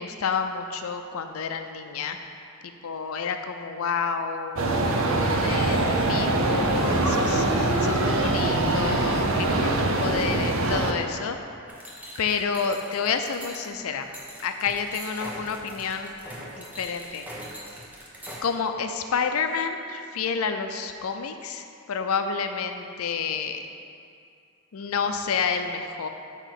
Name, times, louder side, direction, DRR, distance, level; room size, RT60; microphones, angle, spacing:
voice 1, 0.0-2.2 2.6-4.7 5.4-11.4 12.2-14.1 14.4-16.1 16.5-17.2 18.4-23.6 24.7-26.1, left 6 dB, 85° left, 7 dB, 0.5 m, -29 dB
sound 1, 4.6-10.9, right 2 dB, 70° right, 0.6 m, -23 dB
sound 2, 11.7-18.4, equal, 10° right, 0.7 m, -42 dB
8.3 x 3.0 x 5.8 m, 2.5 s
head